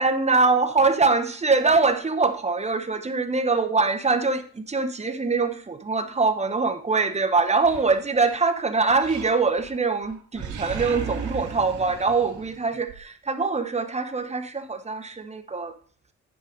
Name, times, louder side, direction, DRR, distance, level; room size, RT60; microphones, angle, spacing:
voice 1, 0.0-15.8, right 4 dB, 20° right, 1.1 m, -23 dB
Animal, 7.6-8.5 9.0-9.8 10.0-13.0, right 6 dB, 75° right, 2.5 m, -36 dB
9.7 x 4.7 x 5.3 m
cardioid pair, 90°, 30 cm